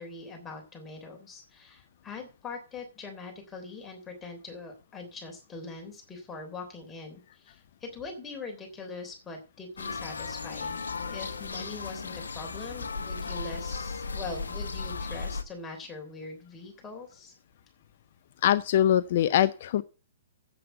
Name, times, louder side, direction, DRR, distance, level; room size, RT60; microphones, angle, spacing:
voice 1, 0.0-17.3, left 3 dB, 15° left, 1 dB, 3.3 m, -42 dB
sound 1, 9.8-15.4, left 4 dB, 70° left, 1.0 m, -36 dB
voice 2, 18.4-19.8, left 11 dB, 50° left, 13 dB, 0.5 m, -23 dB
8.2 x 7.6 x 8.0 m, 0.35 s
figure-of-eight pair, 115°, 0 cm